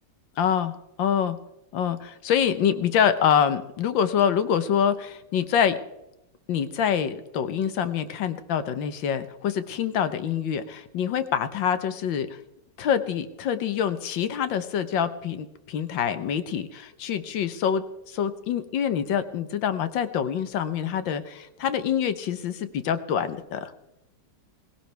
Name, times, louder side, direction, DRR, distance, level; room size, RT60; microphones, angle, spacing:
voice 1, 0.4-1.4 1.7-5.8 6.5-12.4 12.8-23.7, left 8 dB, 75° left, 11 dB, 1.7 m, -26 dB
19.5 x 17.0 x 3.4 m, 0.91 s
omnidirectional pair, 2.1 m